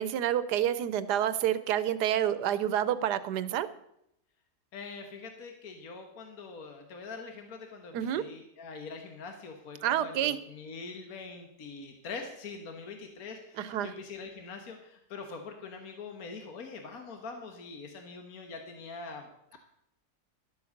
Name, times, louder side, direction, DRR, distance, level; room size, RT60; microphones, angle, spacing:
voice 1, 0.0-3.7 7.9-8.2 9.8-10.4 13.6-13.9, right 10 dB, 85° right, 15 dB, 1.3 m, -28 dB
voice 2, 4.7-19.6, left 4 dB, 65° left, 4 dB, 1.7 m, -43 dB
12.0 x 8.0 x 6.5 m, 0.77 s
omnidirectional pair, 1.7 m